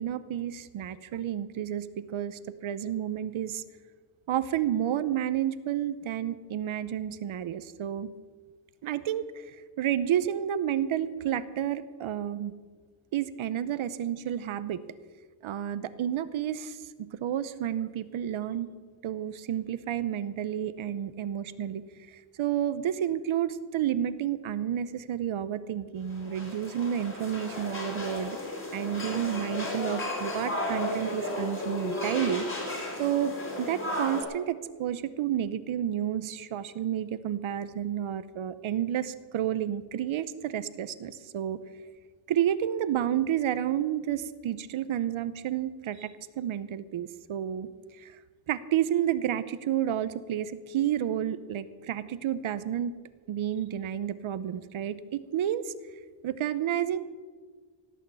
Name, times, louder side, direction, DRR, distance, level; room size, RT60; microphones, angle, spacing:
voice 1, 0.0-3.6 4.3-8.1 8.8-12.5 13.1-14.8 15.4-18.7 19.0-21.8 22.1-28.4 28.7-32.6 33.0-41.6 42.3-48.2 48.5-53.0 53.3-55.7 56.2-57.0, right 10 dB, 85° right, 14 dB, 0.8 m, -30 dB
sound 1, 26.1-34.2, left 1 dB, 25° left, 3.6 m, -34 dB
17.0 x 6.4 x 8.2 m, 1.5 s
wide cardioid pair, 135°, 47 cm